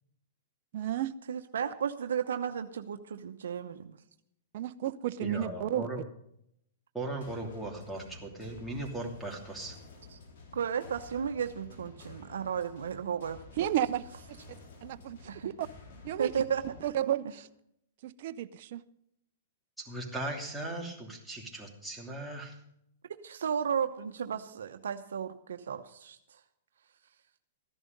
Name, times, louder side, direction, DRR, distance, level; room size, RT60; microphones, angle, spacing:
voice 1, 0.7-1.1 4.5-5.8 13.6-14.0 14.8-15.2 15.4-15.7 16.0-16.3 16.8-17.5 18.0-18.8, right 12 dB, 55° right, 11 dB, 0.6 m, -32 dB
voice 2, 1.3-4.0 10.1-10.2 10.5-13.7 15.3-15.5 16.2-16.9 23.2-26.4, right 7 dB, 85° right, 7 dB, 0.9 m, -34 dB
voice 3, 5.2-6.0 6.9-9.8 19.8-22.6, right 2 dB, ahead, -3 dB, 2.8 m, -38 dB
sound 1, 7.2-16.8, left 3 dB, 65° left, 4.2 m, -51 dB
14.0 x 11.0 x 5.2 m, 0.74 s
hypercardioid pair, 135°, 0 cm